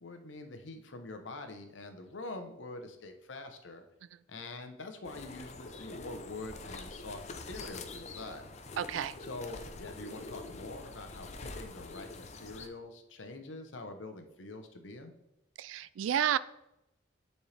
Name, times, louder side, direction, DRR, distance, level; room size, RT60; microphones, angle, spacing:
voice 1, 0.0-3.8 4.3-8.5 9.2-15.1, left 2 dB, 80° left, 6 dB, 0.9 m, -45 dB
sound 1, 5.0-12.7, left 3 dB, 35° left, 0.5 m, -45 dB
voice 2, 8.8-9.1 15.6-16.4, right 9 dB, 90° right, 17 dB, 0.3 m, -30 dB
9.8 x 4.3 x 3.3 m, 0.87 s
head